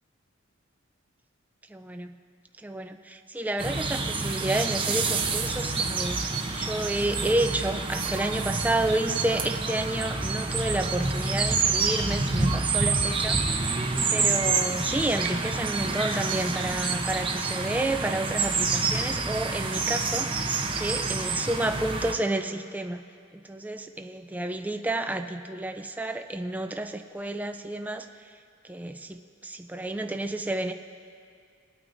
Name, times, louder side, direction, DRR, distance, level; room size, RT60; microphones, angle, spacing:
voice 1, 1.7-2.1 2.6-13.4 14.1-23.0 23.3-28.1 28.6-30.7, right 1 dB, 10° right, 6 dB, 0.4 m, -30 dB
sound 1, 3.6-22.1, right 4 dB, 25° right, 0.8 m, -28 dB
22.0 x 8.9 x 2.7 m, 2.3 s
head